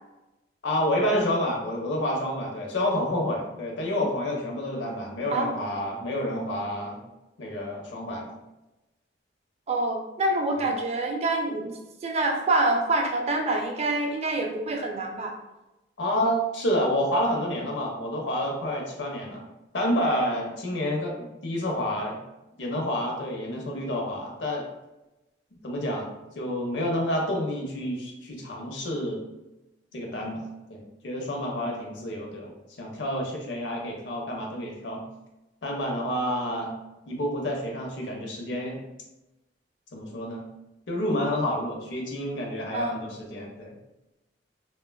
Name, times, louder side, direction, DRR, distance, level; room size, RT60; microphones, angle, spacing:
voice 1, 0.6-7.0 7.4-8.3 10.6-10.7 16.0-19.5 19.7-22.2 22.6-24.6 25.6-29.2 29.9-32.5 32.8-35.0 35.6-36.7 37.1-38.8 39.9-40.4 40.9-43.7, left 1 dB, 80° left, 0 dB, 0.6 m, -29 dB
voice 2, 9.7-11.7 12.0-15.3 36.5-36.7 42.7-43.0, right 2 dB, 35° right, 2 dB, 0.4 m, -26 dB
3.2 x 2.2 x 2.2 m, 0.99 s
head